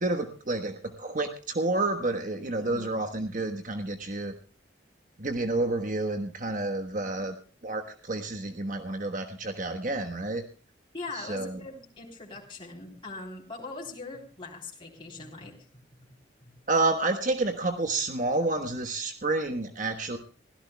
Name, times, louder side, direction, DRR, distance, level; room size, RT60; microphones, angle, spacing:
voice 1, 0.0-4.3 5.2-7.3 7.6-10.4 11.1-11.6 16.7-20.2, right 2 dB, 45° right, 5 dB, 1.3 m, -29 dB
voice 2, 2.6-3.0 10.9-15.6 16.4-16.5, left 3 dB, 25° left, -1 dB, 3.7 m, -41 dB
24.0 x 16.5 x 2.3 m, 0.38 s
head